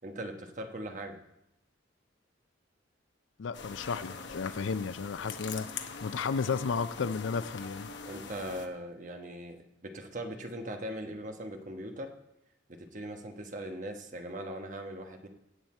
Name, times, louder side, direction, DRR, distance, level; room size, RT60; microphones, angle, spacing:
voice 1, 0.0-1.2 8.0-12.1 12.7-15.3, right 1 dB, 40° right, 1.1 m, -40 dB
voice 2, 3.4-7.9, left 5 dB, 85° left, 0.5 m, -33 dB
sound 1, 3.5-8.7, left 5 dB, 70° left, 1.0 m, -43 dB
16.0 x 8.0 x 4.3 m
head